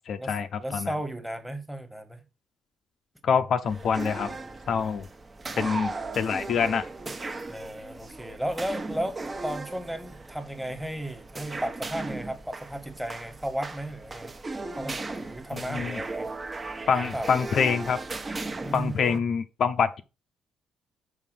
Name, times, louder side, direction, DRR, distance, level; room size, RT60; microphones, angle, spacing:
voice 1, 0.1-0.9 3.2-4.3 4.7-5.1 5.6-6.9 15.5-16.0 16.9-18.0 18.7-20.0, left 6 dB, 60° left, 0.8 m, -26 dB
voice 2, 0.6-2.2 5.5-6.2 7.5-14.3 14.8-16.3 17.0-17.3 18.6-19.2, right 1 dB, 5° right, 1.6 m, -35 dB
sound 1, 3.7-19.2, right 3 dB, 30° right, 1.1 m, -37 dB
5.7 x 4.9 x 6.4 m
cardioid pair, 90°, 0 cm